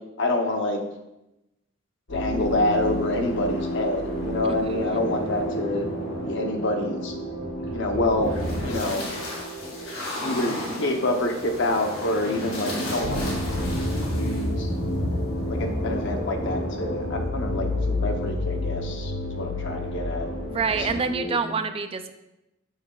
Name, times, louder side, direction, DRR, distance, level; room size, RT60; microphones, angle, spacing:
voice 1, 0.2-0.8 2.1-5.9 6.2-7.1 7.7-9.1 10.2-13.4 14.1-14.7 15.5-20.3 20.7-21.6, left 2 dB, 60° left, 4 dB, 0.8 m, -27 dB
sound 1, 2.1-21.0, equal, 85° left, 2.1 m, -29 dB
voice 2, 4.5-5.0 20.5-22.1, right 5 dB, 25° right, 8 dB, 0.4 m, -27 dB
7.2 x 6.8 x 2.3 m, 0.93 s
head